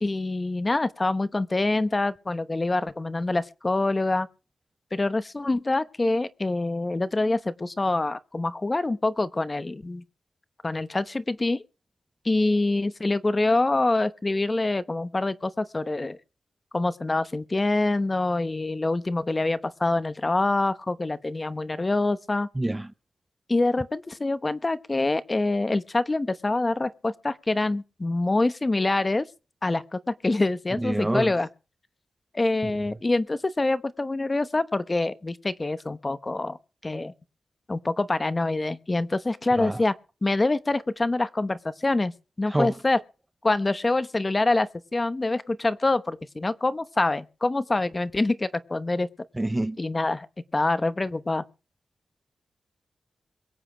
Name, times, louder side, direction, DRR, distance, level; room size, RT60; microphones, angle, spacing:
voice 1, 0.0-4.3 4.9-10.0 10.6-11.6 12.2-16.2 16.7-22.5 23.5-29.3 29.6-31.5 32.3-36.6 36.8-37.1 37.7-39.9 40.2-42.1 42.4-43.0 43.4-49.1 49.8-50.3 50.5-51.4, left 2 dB, 25° left, 0.9 m, -25 dB
voice 2, 22.5-22.9 30.8-31.3 32.6-32.7 39.6-39.8 42.5-42.7 49.4-49.8, right 1 dB, 15° right, 0.6 m, -27 dB
22.5 x 8.2 x 5.0 m
wide cardioid pair, 95°, 0 cm